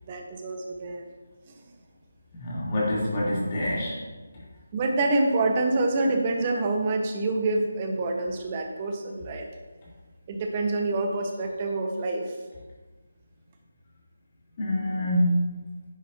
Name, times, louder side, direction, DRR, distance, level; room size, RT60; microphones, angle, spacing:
voice 1, 0.1-1.0 4.7-9.5 10.3-12.3, right 2 dB, 25° right, 3 dB, 1.3 m, -26 dB
voice 2, 2.4-4.0 14.6-15.6, left 1 dB, 35° left, -7 dB, 3.5 m, -26 dB
11.0 x 10.5 x 2.9 m, 1.3 s
figure-of-eight pair, 160°, 0 cm